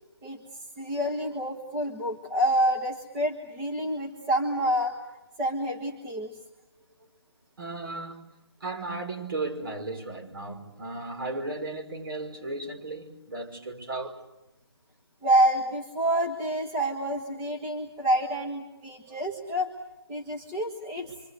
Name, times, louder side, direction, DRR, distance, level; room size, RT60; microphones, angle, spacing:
voice 1, 0.8-4.9 5.4-6.4 15.2-19.8 20.1-21.1, right 1 dB, 15° right, 1.6 m, -27 dB
voice 2, 7.6-8.2 8.6-14.2, right 2 dB, 55° right, 5.4 m, -35 dB
27.5 x 25.5 x 8.1 m
figure-of-eight pair, 165°, 14 cm